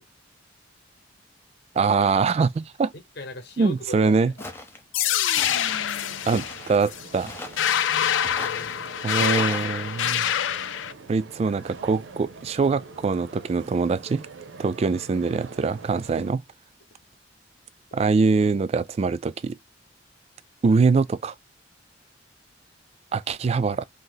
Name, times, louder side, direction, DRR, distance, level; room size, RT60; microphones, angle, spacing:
voice 1, 1.8-2.9 3.6-4.3 6.3-7.3 9.0-10.3 11.1-14.3 14.6-16.4 17.9-19.6 20.6-21.3 23.1-23.8, right 4 dB, 35° right, 0.3 m, -23 dB
voice 2, 2.9-4.1 6.7-6.8 7.8-8.9, left 1 dB, 60° left, 0.9 m, -40 dB
Walk footsteps, 4.4-4.8 5.4-5.8 6.3-6.8 7.3-7.7 8.2-8.6 9.2-9.7, left 1 dB, 10° left, 0.6 m, -38 dB
sound 1, 4.9-10.9, left 10 dB, 85° left, 0.4 m, -25 dB
sound 2, 5.4-16.3, right 3 dB, 80° right, 0.6 m, -45 dB
2.8 x 2.7 x 3.9 m
head